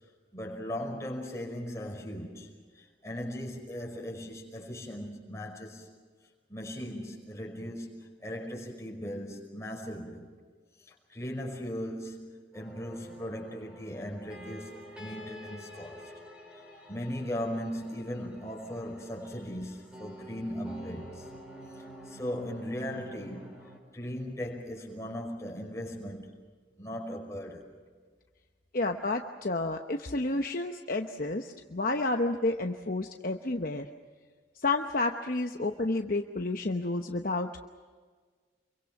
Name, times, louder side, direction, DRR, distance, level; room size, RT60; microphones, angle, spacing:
voice 1, 0.3-5.9 6.5-10.3 10.9-16.1 16.9-21.3 22.1-26.3 26.8-27.6, equal, 15° left, 5.4 m, -38 dB
sound 1, 12.5-23.8, equal, 5° right, 5.3 m, -48 dB
voice 2, 28.7-33.9 34.6-37.7, left 2 dB, 50° left, 1.0 m, -30 dB
28.0 x 23.5 x 6.0 m
head